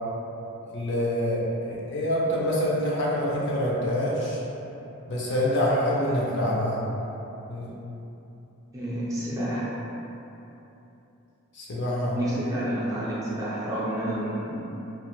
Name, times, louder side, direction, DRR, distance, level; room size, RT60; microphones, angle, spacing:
voice 1, 0.7-4.4 5.1-6.8 7.5-7.7 11.5-12.2, equal, 55° left, -5 dB, 0.6 m, -26 dB
voice 2, 8.7-9.7 12.1-14.7, right 1 dB, 15° right, -8 dB, 0.4 m, -29 dB
2.9 x 2.4 x 3.0 m, 3.0 s
head